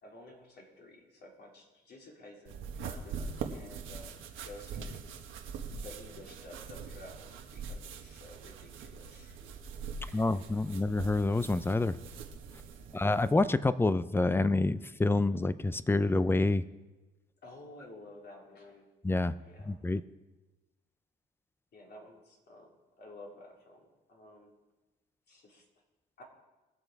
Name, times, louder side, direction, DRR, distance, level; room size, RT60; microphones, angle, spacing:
voice 1, 0.0-5.2 5.7-9.5 10.0-10.5 12.9-13.2 17.4-18.9 19.4-19.8 21.7-24.6 25.3-25.6 26.2-26.3, left 1 dB, 55° left, -1 dB, 3.5 m, -52 dB
sound 1, 2.5-13.3, right 5 dB, 80° right, 1.3 m, -43 dB
voice 2, 10.1-12.0 12.9-16.6 19.0-19.3 19.7-20.0, left 2 dB, 10° left, 15 dB, 0.5 m, -27 dB
20.5 x 6.9 x 4.7 m, 1.1 s
cardioid pair, 90°, 20 cm